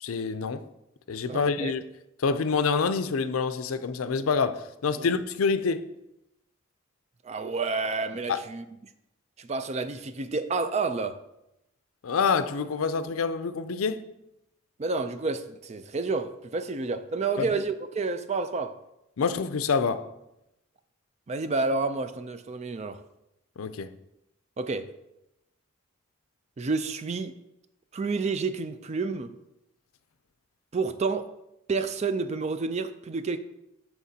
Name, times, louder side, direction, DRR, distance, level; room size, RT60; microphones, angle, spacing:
voice 1, 0.0-0.6 1.1-1.8 2.2-5.9 8.3-8.4 12.0-14.0 17.4-17.5 19.2-20.0 23.6-23.9, left 5 dB, 90° left, 0.5 m, -27 dB
voice 2, 1.3-1.7 5.0-5.1 7.2-8.8 9.4-11.2 14.8-18.8 21.3-23.0 24.6-24.9 26.6-27.4 27.9-29.4 30.7-31.3 31.7-33.4, right 4 dB, 30° right, 0.4 m, -29 dB
12.0 x 4.5 x 2.8 m
head